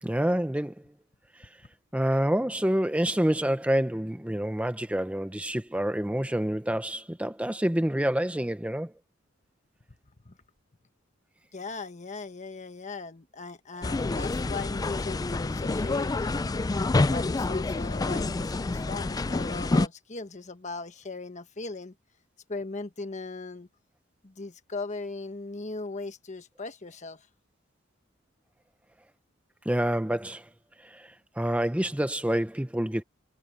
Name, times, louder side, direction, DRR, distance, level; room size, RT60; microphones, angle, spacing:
voice 1, 0.0-0.7 1.4-1.5 1.9-8.9 29.7-30.5 30.8-33.0, right 1 dB, 5° right, 0.7 m, -27 dB
voice 2, 11.5-16.4 17.0-21.9 22.5-23.7 24.2-27.3, left 3 dB, 35° left, 1.2 m, -39 dB
sound 1, 13.8-19.9, left 3 dB, 20° left, 0.3 m, -28 dB
head